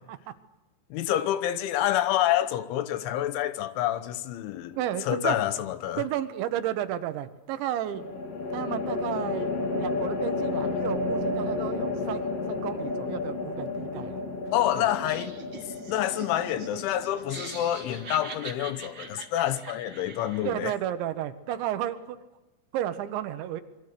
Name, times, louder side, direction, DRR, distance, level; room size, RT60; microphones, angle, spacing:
voice 1, 0.9-6.0 14.5-15.4 15.9-20.7, left 12 dB, 80° left, 3.3 m, -28 dB
sound 1, 4.7-5.3 7.9-19.2, left 3 dB, 40° left, 2.8 m, -32 dB
voice 2, 4.8-5.4 6.0-8.0 8.5-14.2 20.4-22.2 22.7-23.6, right 11 dB, 75° right, 3.2 m, -32 dB
Laughter, 14.9-20.7, right 4 dB, 50° right, 1.3 m, -43 dB
26.5 x 23.0 x 6.7 m
omnidirectional pair, 5.6 m